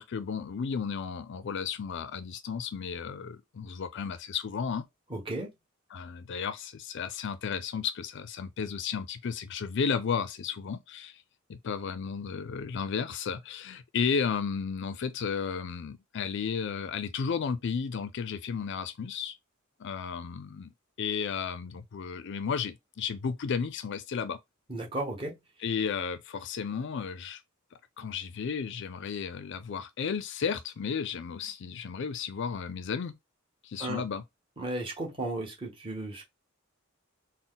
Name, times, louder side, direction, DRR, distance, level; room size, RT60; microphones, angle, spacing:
voice 1, 0.0-4.8 5.9-11.2 11.5-19.4 19.8-20.7 21.0-24.4 25.6-27.4 28.0-33.1 33.6-34.2, left 6 dB, 60° left, 0.4 m, -33 dB
voice 2, 5.1-5.5 24.7-25.3 33.8-34.0 34.6-36.2, right 2 dB, 25° right, 1.3 m, -34 dB
4.1 x 2.1 x 3.8 m
head